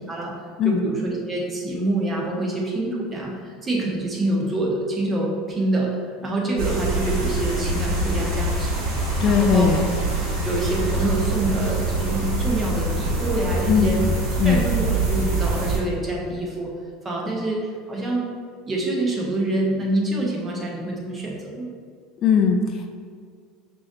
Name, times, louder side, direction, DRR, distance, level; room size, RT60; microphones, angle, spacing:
voice 1, 0.6-8.8 9.2-10.0 10.4-14.0 14.4-16.7 17.0-18.3 18.7-21.7, right 1 dB, 25° right, -2 dB, 1.1 m, -26 dB
sound 1, 6.6-15.8, right 2 dB, 70° right, 1.3 m, -24 dB
voice 2, 9.2-9.9 13.7-14.7 22.2-22.9, left 6 dB, 45° left, 4 dB, 0.3 m, -20 dB
5.5 x 2.6 x 2.6 m, 2.1 s
hypercardioid pair, 80°, 0 cm